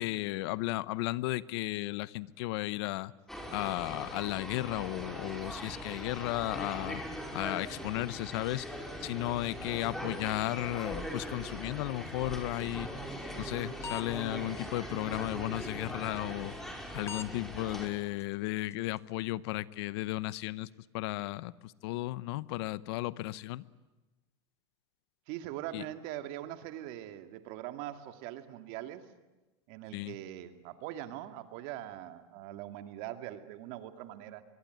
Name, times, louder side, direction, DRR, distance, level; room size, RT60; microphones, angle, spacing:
voice 1, 0.0-3.1 3.5-7.0 7.3-8.7 9.0-13.0 13.3-20.7 20.9-23.6 25.7-25.8 29.9-30.1, left 18 dB, 65° left, 19 dB, 0.8 m, -34 dB
sound 1, 3.3-17.9, equal, 5° left, 5.1 m, -41 dB
sound 2, 11.8-19.1, left 6 dB, 20° left, 1.3 m, -50 dB
voice 2, 25.3-29.1 29.7-34.4, right 13 dB, 60° right, 8 dB, 2.3 m, -42 dB
24.0 x 22.5 x 9.4 m, 1.1 s
hypercardioid pair, 110°, 14 cm